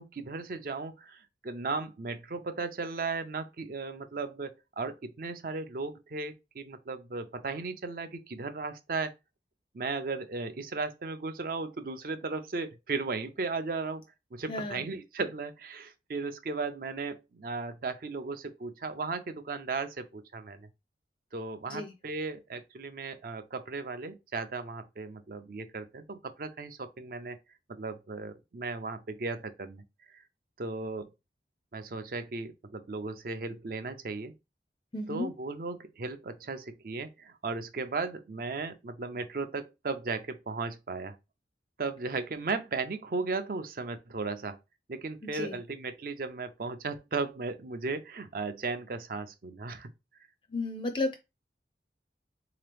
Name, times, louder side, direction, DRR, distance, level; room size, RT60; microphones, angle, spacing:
voice 1, 0.0-9.1 9.7-14.0 14.3-20.6 21.3-27.4 27.8-29.8 30.6-31.1 31.7-34.3 35.1-41.2 41.8-44.6 44.9-49.9, right 4 dB, 55° right, 0.5 m, -36 dB
voice 2, 14.5-14.8 21.7-21.9 34.9-35.3 45.3-45.6 50.5-51.2, left 2 dB, 30° left, 0.4 m, -33 dB
3.7 x 2.9 x 3.3 m
head